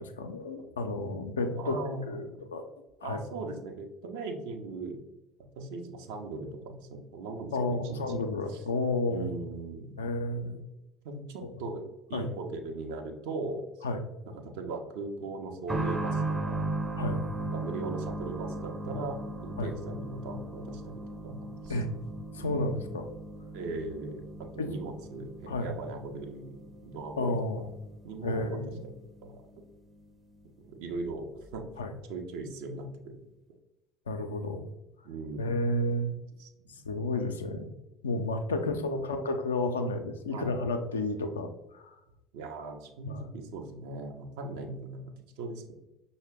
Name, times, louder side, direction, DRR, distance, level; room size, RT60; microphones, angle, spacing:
voice 1, 0.0-2.6 3.0-3.2 7.5-9.3 10.0-10.6 12.1-12.3 13.8-14.0 17.0-17.2 19.6-19.7 21.7-21.9 22.3-23.1 24.6-24.7 25.5-25.7 27.2-27.7 28.2-28.8 31.8-31.9 34.1-34.7 35.4-36.1 36.9-37.7 38.0-42.0 43.1-43.3, left 2 dB, 80° left, 6 dB, 0.4 m, -31 dB
voice 2, 1.5-2.5 3.0-5.0 5.6-8.7 9.1-10.1 10.4-10.6 11.0-11.8 12.1-13.6 14.3-16.6 17.5-21.8 22.3-22.9 23.5-24.2 24.5-26.6 26.8-27.4 28.0-28.9 29.2-29.4 30.6-31.7 32.1-33.2 35.0-35.7 36.4-36.7 38.5-39.1 40.3-40.6 42.3-45.8, right 3 dB, 65° right, 4 dB, 0.6 m, -39 dB
sound 1, 15.7-30.1 30.4-30.5 31.4-31.5, right 2 dB, 15° right, 0.5 m, -37 dB
5.6 x 2.1 x 3.5 m, 0.95 s
figure-of-eight pair, 65°, 0 cm